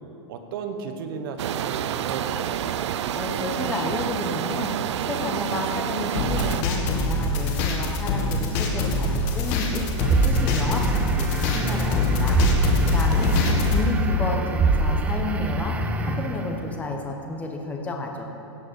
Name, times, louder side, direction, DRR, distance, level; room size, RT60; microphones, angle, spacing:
voice 1, 0.3-2.7, right 5 dB, 50° right, 6 dB, 1.3 m, -34 dB
sound 1, 1.4-6.6, right 10 dB, 75° right, 0.5 m, -28 dB
voice 2, 3.1-13.4 13.7-18.3, left 2 dB, 10° left, 2 dB, 1.1 m, -31 dB
sound 2, 6.2-13.8, left 3 dB, 35° left, 1.7 m, -24 dB
sound 3, 10.0-16.7, right 3 dB, 10° right, 0.4 m, -25 dB
17.0 x 6.4 x 7.1 m, 2.8 s
supercardioid pair, 165°, 15 cm